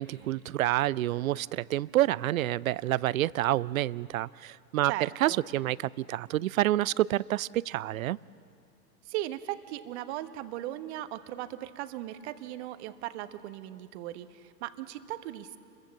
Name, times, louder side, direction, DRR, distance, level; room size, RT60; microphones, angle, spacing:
voice 1, 0.0-8.2, right 15 dB, 60° right, 22 dB, 0.6 m, -28 dB
voice 2, 4.8-5.4 9.0-15.6, right 14 dB, 45° right, 10 dB, 1.3 m, -38 dB
29.5 x 22.5 x 7.2 m, 2.8 s
hypercardioid pair, 115°, 49 cm